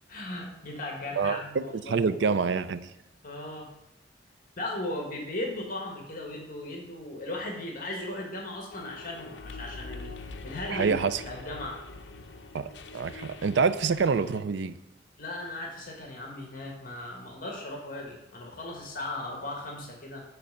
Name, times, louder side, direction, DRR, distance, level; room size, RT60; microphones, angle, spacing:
voice 1, 0.1-2.0 3.2-3.7 4.6-10.1 10.4-11.8 15.2-20.2, left 1 dB, 50° left, 0 dB, 1.3 m, -37 dB
voice 2, 1.2-2.9 10.7-11.2 12.5-14.8, right 5 dB, 70° right, 13 dB, 0.4 m, -27 dB
sound 1, 8.7-14.4, left 3 dB, 75° left, 0.6 m, -44 dB
8.3 x 3.3 x 6.4 m, 0.92 s
head